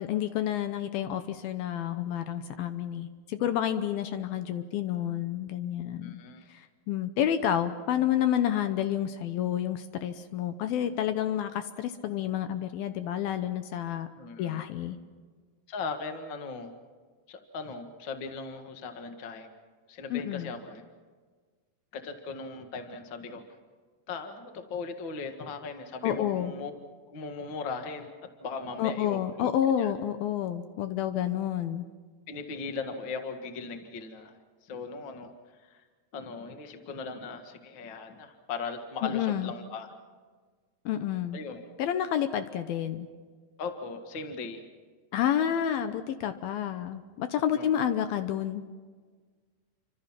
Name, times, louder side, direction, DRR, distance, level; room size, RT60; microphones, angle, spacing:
voice 1, 0.0-6.2 6.5-14.1 14.4-15.0 20.1-20.5 26.0-26.5 28.8-31.8 39.0-39.5 40.9-41.4 41.8-43.1 45.1-48.7, left 10 dB, 75° left, 10 dB, 2.5 m, -29 dB
voice 2, 6.0-6.4 14.1-14.6 15.7-16.7 17.3-19.5 19.9-20.8 21.9-23.4 24.1-26.7 27.1-29.5 29.8-29.9 32.3-34.3 34.6-35.3 35.6-35.8 36.1-39.9 41.3-41.6 43.6-44.6 47.5-47.8, left 4 dB, 45° left, 6 dB, 1.7 m, -38 dB
29.0 x 25.5 x 5.9 m, 1.5 s
omnidirectional pair, 4.6 m